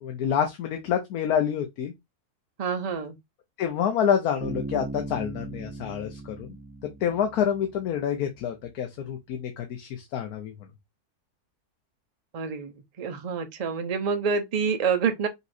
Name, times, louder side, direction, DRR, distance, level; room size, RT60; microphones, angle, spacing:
voice 1, 0.0-1.9 3.6-6.6 7.0-10.5, left 8 dB, 75° left, 1.2 m, -27 dB
voice 2, 2.6-3.2 12.3-12.7 13.0-15.3, right 6 dB, 75° right, 0.3 m, -27 dB
Bass guitar, 4.4-8.0, right 3 dB, 5° right, 0.8 m, -38 dB
5.4 x 3.1 x 2.5 m
omnidirectional pair, 1.6 m